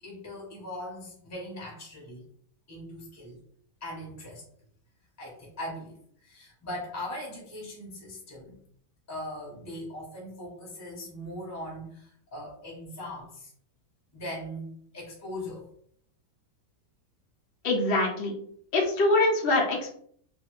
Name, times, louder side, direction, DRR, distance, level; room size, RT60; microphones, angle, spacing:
voice 1, 0.0-2.3 2.7-3.4 3.8-4.4 5.2-8.6 9.1-13.5 14.1-15.7, left 1 dB, 15° left, -4 dB, 0.8 m, -40 dB
voice 2, 17.6-18.3 18.7-19.9, left 2 dB, 55° left, -1 dB, 0.6 m, -24 dB
2.6 x 2.5 x 3.0 m, 0.63 s
omnidirectional pair, 1.8 m